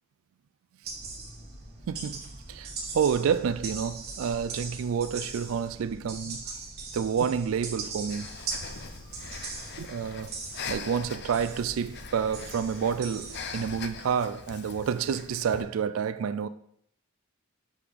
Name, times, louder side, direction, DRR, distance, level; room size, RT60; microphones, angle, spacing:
sound 1, 0.8-13.9, right 3 dB, 50° right, 1.3 m, -40 dB
voice 1, 1.9-6.5 6.9-8.3 9.8-10.4 10.7-16.5, right 7 dB, 80° right, 0.3 m, -29 dB
Breathing, 8.1-15.6, left 5 dB, 55° left, 0.6 m, -42 dB
6.6 x 4.8 x 3.6 m
head